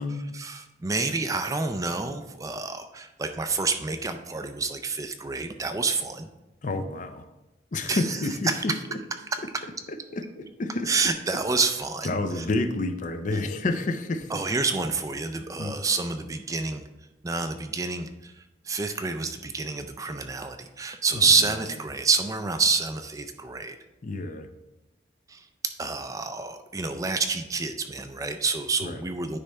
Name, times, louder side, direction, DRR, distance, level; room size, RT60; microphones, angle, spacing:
voice 1, 0.3-6.3 7.8-8.2 8.5-8.6 10.9-12.5 14.3-16.8 17.2-23.8 25.3-25.4 25.8-29.4, right 4 dB, 20° right, 7 dB, 0.3 m, -28 dB
voice 2, 6.6-7.3 7.7-9.0 10.1-10.9 12.0-14.4 15.6-15.8 21.1-21.6 24.0-24.5 28.8-29.0, left 2 dB, 40° left, 9 dB, 0.5 m, -29 dB
9.9 x 3.4 x 4.2 m, 0.99 s
head